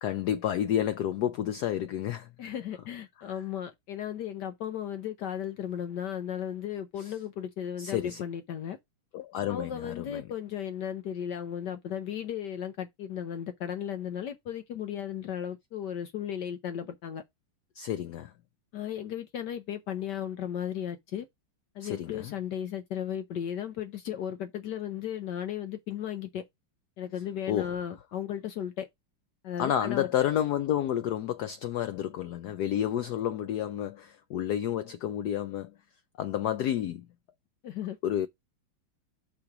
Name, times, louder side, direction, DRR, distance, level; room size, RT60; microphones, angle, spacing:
voice 1, 0.0-2.3 7.0-7.1 7.8-8.2 9.1-10.2 17.8-18.3 21.8-22.3 27.5-27.7 29.6-35.7 36.2-37.0 38.0-38.3, left 10 dB, 90° left, 0.8 m, -30 dB
voice 2, 2.4-8.8 9.5-17.2 18.7-21.3 21.7-26.4 27.0-28.9 29.4-30.1 37.6-38.0, left 9 dB, 65° left, 1.2 m, -35 dB
5.8 x 4.0 x 5.8 m
omnidirectional pair, 2.3 m